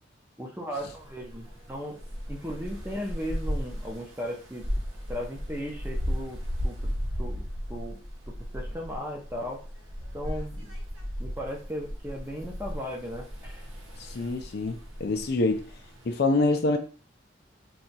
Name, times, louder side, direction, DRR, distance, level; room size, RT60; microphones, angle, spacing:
voice 1, 0.4-2.0 2.3-4.7 5.1-6.4 6.6-7.4 7.7-8.0 8.3-9.6 10.1-10.7 11.2-13.7, equal, 10° right, 0.6 m, -36 dB
sound 1, 0.8-16.2, equal, 90° right, 1.0 m, -36 dB
voice 2, 14.0-15.6 16.1-16.8, left 2 dB, 55° left, 0.4 m, -26 dB
2.8 x 2.3 x 4.1 m
head